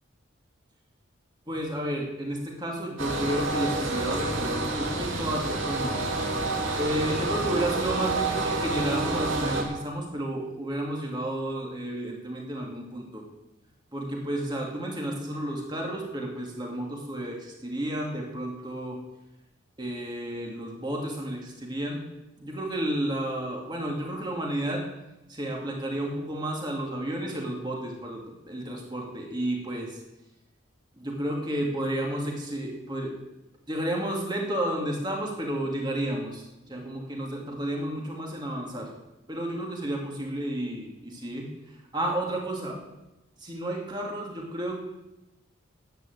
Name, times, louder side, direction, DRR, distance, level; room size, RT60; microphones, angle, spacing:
voice 1, 1.5-6.0 6.6-13.2 13.9-19.0 19.8-22.0 22.4-24.8 25.3-30.0 30.9-33.2 33.7-38.9 39.3-42.8 43.4-44.8, right 1 dB, 20° right, -1 dB, 2.5 m, -32 dB
sound 1, 3.0-9.6, right 2 dB, 70° right, 2.5 m, -28 dB
10.5 x 9.7 x 8.0 m, 0.98 s
head